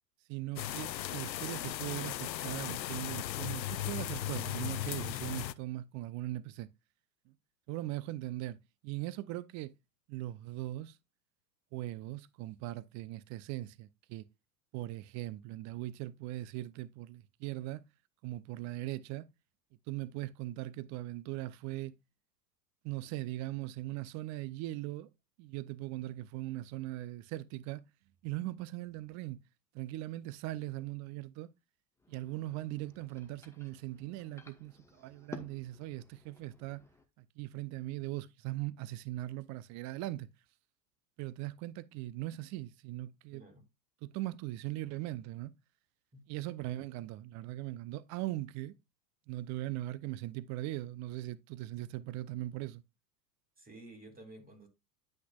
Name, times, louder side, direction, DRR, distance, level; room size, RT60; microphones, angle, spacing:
voice 1, 0.3-6.7 7.3-7.4 7.7-8.6 8.8-9.7 10.1-11.0 11.7-14.3 14.7-17.8 18.2-19.2 19.9-21.9 22.8-25.1 25.4-27.8 28.2-29.4 29.7-31.5 32.1-36.8 37.2-40.3 41.2-43.4 44.0-45.5 46.3-48.7 49.3-52.8, right 16 dB, 35° right, 0.6 m, -40 dB
sound 1, 0.6-5.5, left 13 dB, 85° left, 0.6 m, -37 dB
sound 2, 32.0-37.0, left 3 dB, 5° left, 1.0 m, -54 dB
voice 2, 43.3-43.6 46.1-46.2 53.6-54.7, right 2 dB, 15° right, 2.7 m, -52 dB
10.5 x 5.8 x 2.4 m
hypercardioid pair, 90°, 50 cm